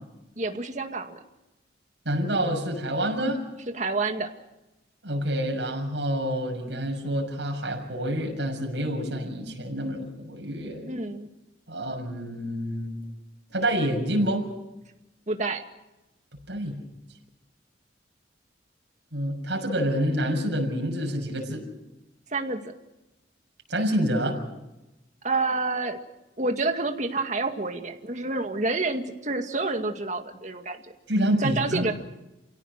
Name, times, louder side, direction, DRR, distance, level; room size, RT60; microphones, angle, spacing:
voice 1, 0.4-1.2 3.7-4.3 10.8-11.3 15.3-15.6 22.3-22.7 25.2-26.0 26.4-30.9 31.4-31.9, right 3 dB, 40° right, 5 dB, 2.1 m, -28 dB
voice 2, 2.0-3.4 5.0-10.9 11.7-12.9 13.5-14.4 16.5-16.8 19.1-21.6 23.7-24.4 31.1-31.9, equal, 75° right, 1 dB, 6.5 m, -27 dB
29.0 x 17.0 x 6.6 m, 0.97 s
head